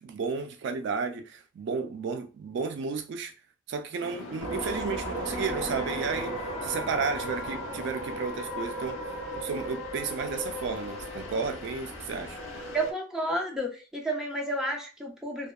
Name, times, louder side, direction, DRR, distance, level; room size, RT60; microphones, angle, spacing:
voice 1, 0.0-3.3 3.7-9.0 9.3-12.4, right 5 dB, 60° right, 0.3 m, -33 dB
sound 1, 4.0-12.9, left 2 dB, 70° left, 0.6 m, -41 dB
sound 2, 4.4-12.8, right 1 dB, 25° right, 1.4 m, -37 dB
voice 2, 12.7-15.5, right 1 dB, 5° right, 0.6 m, -31 dB
2.7 x 2.1 x 2.2 m
head